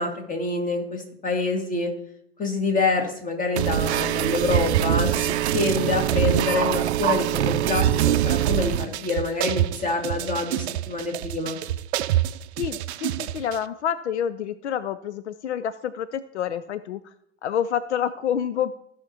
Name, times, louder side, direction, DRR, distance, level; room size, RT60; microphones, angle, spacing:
voice 1, 0.0-1.9 2.4-11.6, left 3 dB, 25° left, 3 dB, 2.0 m, -26 dB
sound 1, 3.6-13.6, right 12 dB, 75° right, 0.5 m, -24 dB
voice 2, 12.6-17.1 17.4-18.8, left 9 dB, 80° left, 14 dB, 0.5 m, -28 dB
16.0 x 5.7 x 2.8 m, 0.71 s
hypercardioid pair, 80°, 34 cm